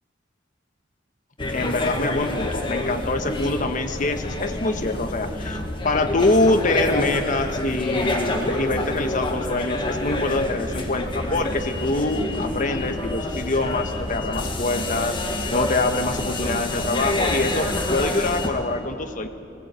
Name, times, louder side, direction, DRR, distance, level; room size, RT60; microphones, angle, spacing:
sound 1, 1.4-18.5, left 1 dB, 25° left, 2.0 m, -27 dB
voice 1, 1.5-19.3, left 2 dB, 45° left, 6 dB, 1.3 m, -25 dB
19.5 x 17.0 x 8.3 m, 2.6 s
head